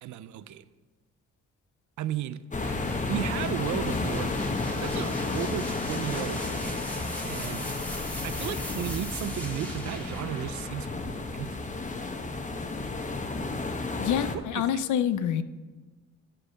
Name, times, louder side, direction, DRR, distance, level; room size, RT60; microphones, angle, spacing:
voice 1, 0.0-0.7 2.0-2.4 3.1-6.9 7.2-7.7 8.2-11.7 14.3-14.8, right 11 dB, 75° right, 15 dB, 0.5 m, -35 dB
sound 1, 2.5-14.3, left 3 dB, 25° left, 0.9 m, -32 dB
sound 2, 2.6-12.3, equal, 5° left, 1.6 m, -42 dB
voice 2, 14.0-15.4, left 9 dB, 80° left, 13 dB, 0.6 m, -27 dB
7.8 x 6.3 x 6.5 m, 1.3 s
cardioid pair, 80°, 30 cm